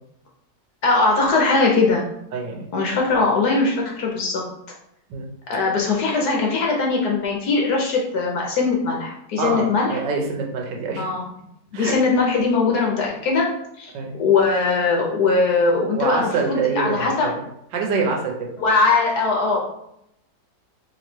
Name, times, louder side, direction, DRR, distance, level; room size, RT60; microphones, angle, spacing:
voice 1, 0.8-2.0 2.7-4.4 5.5-10.0 11.0-11.3 11.7-13.5 13.8-13.9 14.2-17.3 18.6-19.6, left 3 dB, 65° left, -1 dB, 1.2 m, -20 dB
voice 2, 2.3-2.7 5.1-5.3 9.4-11.0 11.7-11.9 13.9-14.1 16.0-17.3 17.7-18.5, right 4 dB, 85° right, 1 dB, 1.5 m, -25 dB
3.3 x 3.0 x 4.3 m, 0.77 s
omnidirectional pair, 1.9 m